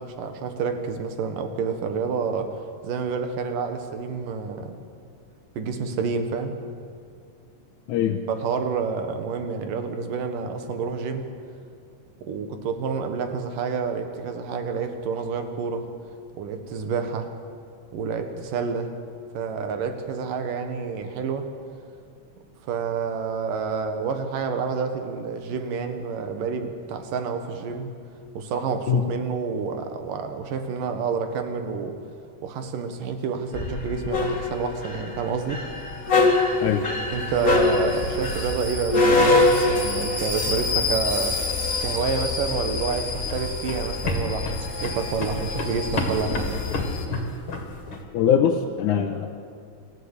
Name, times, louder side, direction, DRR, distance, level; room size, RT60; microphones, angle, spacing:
voice 1, 0.0-4.8 5.6-6.5 8.3-11.3 12.2-15.9 16.4-17.3 17.9-18.9 19.3-21.5 22.6-27.9 28.3-32.0 32.4-35.6 37.1-41.5 41.8-46.7, right 5 dB, 85° right, 7 dB, 3.2 m, -29 dB
voice 2, 7.9-8.2 28.9-29.0 36.6-36.9 48.1-49.4, left 8 dB, 75° left, 2 dB, 2.4 m, -22 dB
sound 1, 33.5-47.1, left 3 dB, 30° left, 2.5 m, -25 dB
sound 2, 42.5-48.0, left 2 dB, 45° left, 3.0 m, -31 dB
26.5 x 14.5 x 8.3 m, 2.4 s
omnidirectional pair, 3.7 m